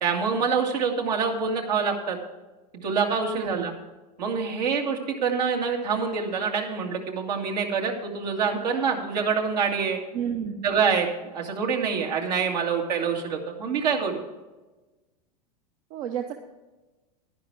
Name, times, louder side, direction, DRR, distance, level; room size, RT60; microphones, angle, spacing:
voice 1, 0.0-2.2 2.8-3.7 4.2-10.0 10.6-14.2, right 5 dB, 80° right, 1 dB, 2.2 m, -26 dB
voice 2, 3.4-3.7 10.1-10.8 15.9-16.4, right 8 dB, 60° right, 5 dB, 1.0 m, -31 dB
11.0 x 10.5 x 4.7 m, 1.1 s
hypercardioid pair, 105°, 21 cm